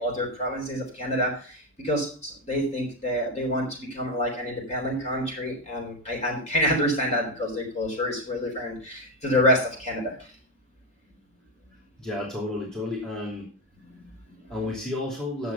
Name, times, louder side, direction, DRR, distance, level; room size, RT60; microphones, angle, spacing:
voice 1, 0.0-10.3 13.9-14.7 15.4-15.5, equal, 30° left, 0 dB, 3.8 m, -28 dB
voice 2, 12.0-13.5 14.5-15.5, left 2 dB, 5° left, -3 dB, 2.8 m, -31 dB
10.0 x 7.2 x 5.4 m, 0.36 s
head